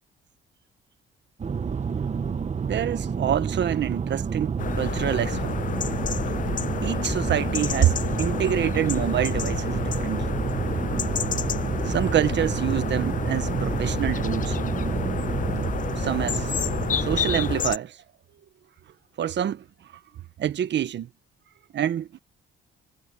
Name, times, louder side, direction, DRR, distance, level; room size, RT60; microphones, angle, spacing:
sound 1, 1.4-17.6, right 6 dB, 35° right, 1.3 m, -29 dB
voice 1, 2.6-5.4 6.8-10.2 11.8-14.6 16.0-16.5 17.0-18.0 19.2-19.6 20.4-21.1 21.7-22.2, right 10 dB, 65° right, 1.4 m, -26 dB
sound 2, 4.6-17.8, left 8 dB, 40° left, 0.6 m, -30 dB
cardioid pair, 90°, 20 cm